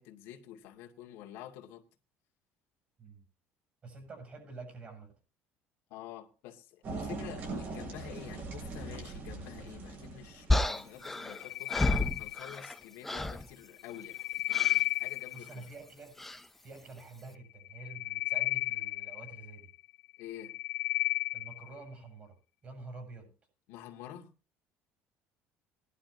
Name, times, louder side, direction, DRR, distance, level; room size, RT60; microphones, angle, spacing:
voice 1, 0.0-1.8 5.9-15.5 20.2-20.5 23.7-24.3, left 11 dB, 80° left, 2.4 m, -48 dB
voice 2, 3.8-5.1 15.3-16.1 16.6-19.7 21.3-22.4 22.6-23.3, right 3 dB, 30° right, 7.6 m, -48 dB
sound 1, 6.8-11.2, right 3 dB, 45° right, 7.2 m, -41 dB
sound 2, 10.5-12.8 13.0-13.5 14.5-14.8 16.2-16.5, left 2 dB, 5° left, 0.7 m, -31 dB
sound 3, 11.1-12.8 13.8-15.6 17.6-19.7 20.2-21.7, left 18 dB, 60° left, 0.8 m, -33 dB
20.5 x 11.5 x 2.9 m
cardioid pair, 145°, 4 cm